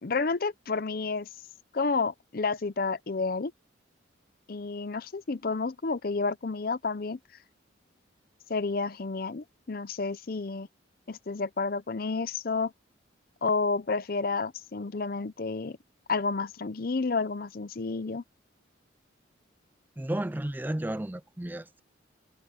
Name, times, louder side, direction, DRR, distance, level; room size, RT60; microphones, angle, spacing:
voice 1, 0.0-1.3 1.7-3.5 4.5-7.2 8.5-10.7 11.1-12.7 13.4-15.8 16.1-18.2, left 4 dB, 50° left, 0.6 m, -30 dB
voice 2, 20.0-21.8, right 1 dB, 10° right, 0.4 m, -33 dB
head